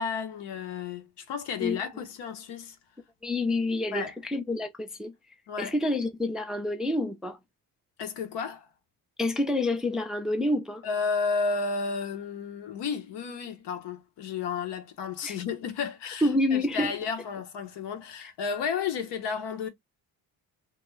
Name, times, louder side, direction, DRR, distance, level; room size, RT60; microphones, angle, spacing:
voice 1, 0.0-2.8 3.9-4.1 5.5-5.7 8.0-8.7 10.8-19.7, left 5 dB, 75° left, 0.8 m, -32 dB
voice 2, 3.2-5.1 5.6-7.4 9.2-10.8 15.2-15.4 16.2-16.9, left 1 dB, ahead, 0.4 m, -28 dB
2.4 x 2.2 x 3.0 m
cardioid pair, 70°, 42 cm